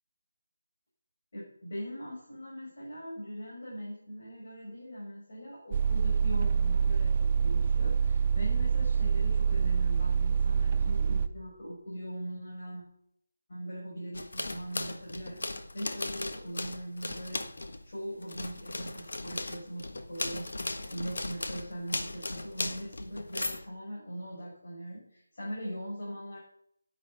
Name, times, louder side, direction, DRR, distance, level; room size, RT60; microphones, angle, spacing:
voice 1, 1.3-12.8 13.5-17.4 17.8-20.5 20.9-26.4, equal, 40° left, -5 dB, 6.1 m, -41 dB
sound 1, 5.7-11.3, right 6 dB, 20° right, 0.5 m, -26 dB
sound 2, 14.1-17.8 18.2-23.7, left 2 dB, 60° left, 1.5 m, -37 dB
11.0 x 9.2 x 8.1 m, 0.74 s
figure-of-eight pair, 175°, 0 cm